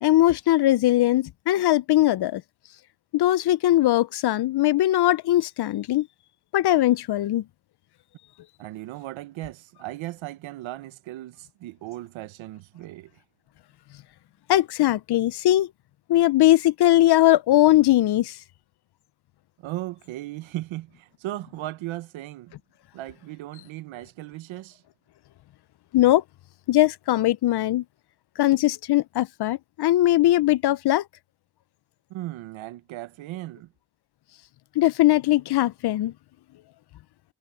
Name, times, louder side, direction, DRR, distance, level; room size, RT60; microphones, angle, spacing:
voice 1, 0.0-2.4 3.1-6.1 6.5-7.4 14.5-15.7 16.1-18.4 25.9-26.2 26.7-27.8 28.4-31.0 34.8-36.1, left 14 dB, 60° left, 0.6 m, -20 dB
voice 2, 8.6-13.1 19.6-22.6 22.9-24.8 32.1-33.7, right 16 dB, 85° right, 1.2 m, -37 dB
cardioid pair, 75°, 46 cm